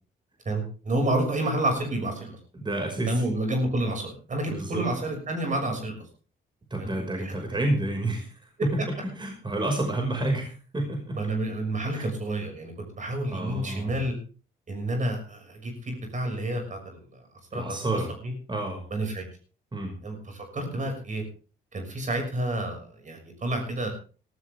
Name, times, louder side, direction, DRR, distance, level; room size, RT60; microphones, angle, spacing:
voice 1, 0.4-2.4 3.1-6.0 6.8-7.3 11.1-14.1 14.7-17.2 17.5-17.6 17.9-18.3 18.9-19.2 20.0-21.2 21.7-23.9, right 1 dB, 40° right, 3 dB, 6.3 m, -29 dB
voice 2, 2.5-3.2 4.5-4.8 6.7-8.3 8.6-11.2 11.9-12.1 13.3-14.0 17.5-18.1 18.5-18.8 19.7-19.9, right 2 dB, 25° right, 2 dB, 5.8 m, -29 dB
17.5 x 14.5 x 3.7 m, 0.38 s
cardioid pair, 90°, 20 cm